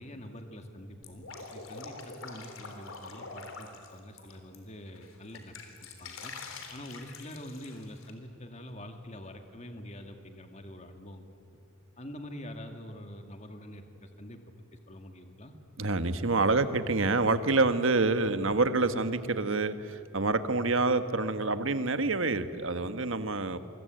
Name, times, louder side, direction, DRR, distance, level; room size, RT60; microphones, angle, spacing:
voice 1, 0.0-6.3 6.7-11.2 12.0-14.4 14.9-15.5, left 1 dB, 35° left, 5 dB, 2.2 m, -45 dB
Drip, 1.0-4.6 5.0-8.1, left 4 dB, 70° left, 3.8 m, -45 dB
voice 2, 15.8-23.6, right 3 dB, 65° right, 10 dB, 1.5 m, -27 dB
28.0 x 23.5 x 9.1 m, 2.7 s
head